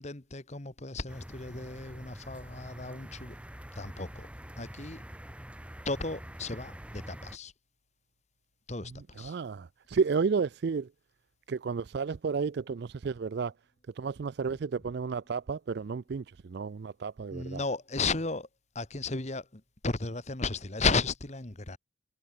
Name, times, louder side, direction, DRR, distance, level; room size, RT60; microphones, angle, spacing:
voice 1, 0.0-3.4 3.7-4.3 4.6-5.0 5.8-7.5 8.7-9.4 17.3-18.5 18.7-21.8, left 3 dB, 35° left, 1.5 m, -34 dB
sound 1, 1.1-7.4, equal, 5° right, 2.0 m, -46 dB
voice 2, 8.9-10.9 11.5-13.5 14.0-17.6, right 5 dB, 55° right, 0.4 m, -32 dB
head